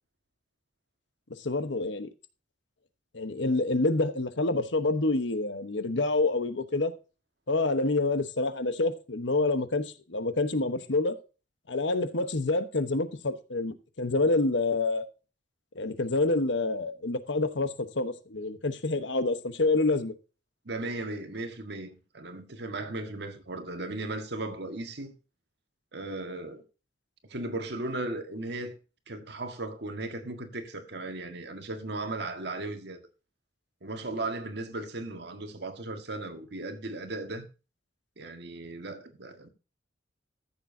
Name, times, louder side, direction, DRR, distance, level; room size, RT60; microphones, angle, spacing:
voice 1, 1.4-2.1 3.1-6.9 7.5-11.2 11.7-15.0 15.7-20.1, left 2 dB, 75° left, 1.1 m, -27 dB
voice 2, 20.6-25.1 25.9-26.6 27.3-28.8 29.1-33.0 33.8-37.5 38.2-39.5, right 2 dB, 60° right, 1.6 m, -36 dB
14.5 x 7.0 x 2.7 m
head